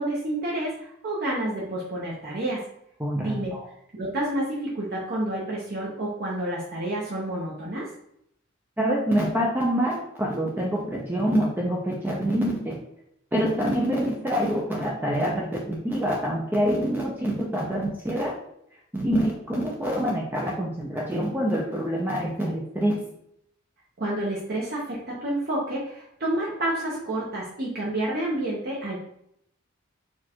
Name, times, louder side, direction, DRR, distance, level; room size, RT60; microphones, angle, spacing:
voice 1, 0.0-2.6 3.2-3.5 3.9-7.9 24.0-29.0, right 1 dB, 50° right, -5 dB, 0.9 m, -29 dB
voice 2, 3.0-3.7 8.8-12.8 13.3-18.3 18.9-23.0, equal, 10° right, -2 dB, 0.5 m, -26 dB
4.4 x 2.4 x 4.4 m, 0.73 s
head